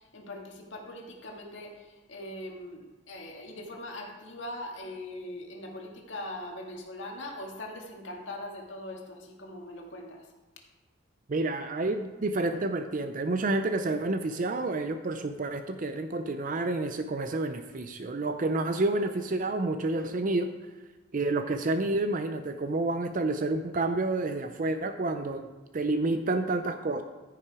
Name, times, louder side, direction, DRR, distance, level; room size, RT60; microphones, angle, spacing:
voice 1, 0.0-10.2, left 1 dB, 75° left, 0 dB, 1.9 m, -41 dB
voice 2, 11.3-20.5 21.1-25.5 25.7-27.0, right 2 dB, 45° right, 8 dB, 0.5 m, -29 dB
14.5 x 5.9 x 4.8 m, 1.2 s
head